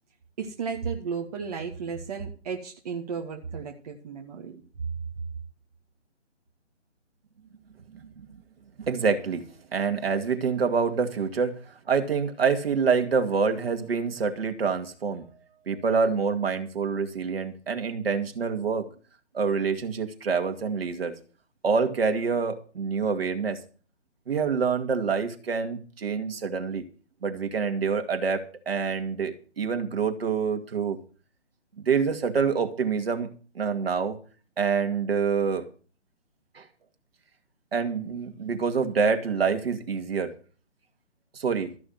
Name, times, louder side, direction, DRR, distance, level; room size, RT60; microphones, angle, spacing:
voice 1, 0.4-4.6 4.9-5.0, right 6 dB, 35° right, 2 dB, 1.4 m, -34 dB
voice 2, 8.8-9.4 9.7-11.6 11.9-15.2 15.7-18.9 19.3-21.1 21.6-23.6 24.3-26.8 27.2-31.0 31.9-33.3 33.6-34.2 34.6-35.6 36.6-36.7 37.7-40.3 41.3-41.7, right 5 dB, 55° right, 6 dB, 2.2 m, -26 dB
14.0 x 6.2 x 8.0 m, 0.38 s
figure-of-eight pair, 150°, 36 cm